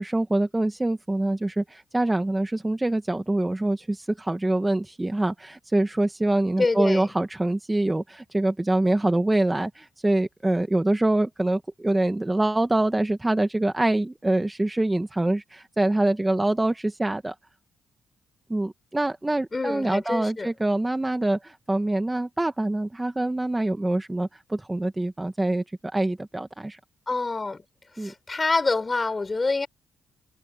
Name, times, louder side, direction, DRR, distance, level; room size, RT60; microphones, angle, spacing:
voice 1, 0.0-17.3 18.5-25.6 25.9-26.8 28.0-28.1, right 2 dB, 15° right, 1.1 m, -25 dB
voice 2, 6.6-7.1 19.5-20.5 27.1-27.6 28.0-29.7, left 3 dB, 25° left, 5.4 m, -26 dB
cardioid pair, 100°, 0 cm